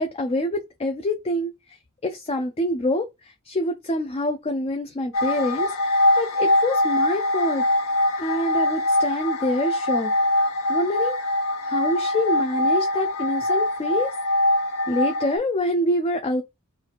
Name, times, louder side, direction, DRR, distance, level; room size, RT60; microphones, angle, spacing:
voice 1, 0.0-7.6 8.2-10.1 10.7-11.3 11.6-14.1 14.9-16.4, left 1 dB, 25° left, 0.4 m, -26 dB
sound 1, 5.1-15.4, left 1 dB, 70° left, 0.6 m, -23 dB
3.1 x 2.4 x 4.0 m
head